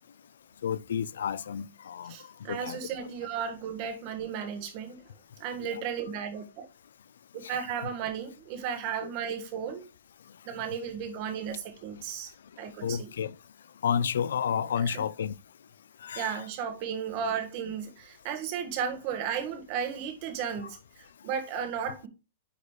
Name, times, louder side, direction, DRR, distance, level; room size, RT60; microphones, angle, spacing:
voice 1, 0.6-2.1 2.5-2.8 5.6-5.8 7.4-7.6 9.0-9.1 12.8-13.3 13.8-15.3 16.0-16.4, left 8 dB, 85° left, 0.4 m, -31 dB
voice 2, 2.0-5.0 5.4-6.7 7.3-9.8 10.4-13.1 14.8-15.0 16.1-22.1, right 7 dB, 35° right, 1.5 m, -34 dB
9.7 x 4.1 x 3.2 m
hypercardioid pair, 165°, 0 cm